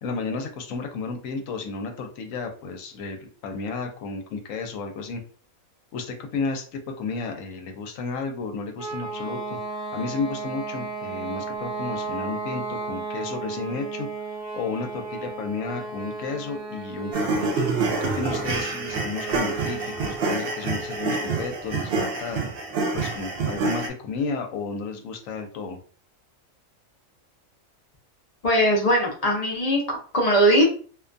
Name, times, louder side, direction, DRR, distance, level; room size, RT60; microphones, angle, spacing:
voice 1, 0.0-5.2 5.9-9.6 9.9-14.1 14.5-17.5 18.0-22.4 22.9-25.8, left 4 dB, 75° left, 4 dB, 0.9 m, -32 dB
sound 1, 8.8-21.6, right 3 dB, 30° left, 0.9 m, -34 dB
sound 2, 17.1-23.9, right 3 dB, 65° right, 0.6 m, -27 dB
voice 2, 28.4-30.6, equal, 55° left, -1 dB, 0.4 m, -20 dB
2.5 x 2.2 x 2.5 m, 0.41 s
omnidirectional pair, 1.4 m